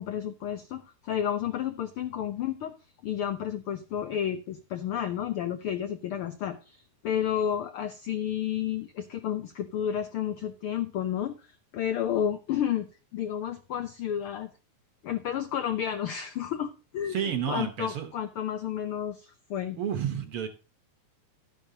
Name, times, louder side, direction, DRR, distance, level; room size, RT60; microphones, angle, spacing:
voice 1, 0.0-2.7 3.0-11.5 11.7-14.5 15.0-17.2 17.5-19.8, left 9 dB, 85° left, 9 dB, 1.2 m, -31 dB
voice 2, 17.1-18.1 19.8-20.5, right 9 dB, 60° right, 7 dB, 1.6 m, -30 dB
12.0 x 10.5 x 2.8 m, 0.31 s
omnidirectional pair, 3.4 m